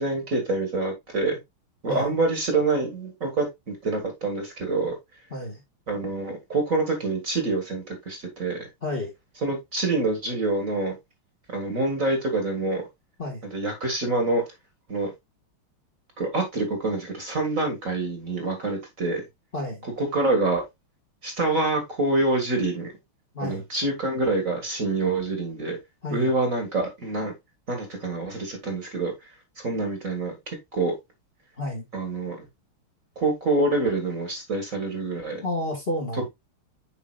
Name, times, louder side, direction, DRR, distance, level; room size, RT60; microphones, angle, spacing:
voice 1, 0.0-1.4 1.8-5.0 5.9-8.7 9.4-11.0 11.5-12.8 13.5-14.4 14.9-15.1 16.2-19.2 19.8-20.6 21.2-22.9 23.4-25.8 26.1-27.3 27.7-29.1 29.6-30.9 31.9-32.5 33.2-35.4, right 2 dB, 40° right, 1.9 m, -26 dB
voice 2, 5.3-5.6 8.8-9.1 13.2-13.4 19.5-19.9 23.3-23.6 26.0-26.3 31.6-31.9 35.4-36.3, left 1 dB, 25° left, 1.9 m, -30 dB
7.6 x 5.6 x 2.4 m
omnidirectional pair, 2.4 m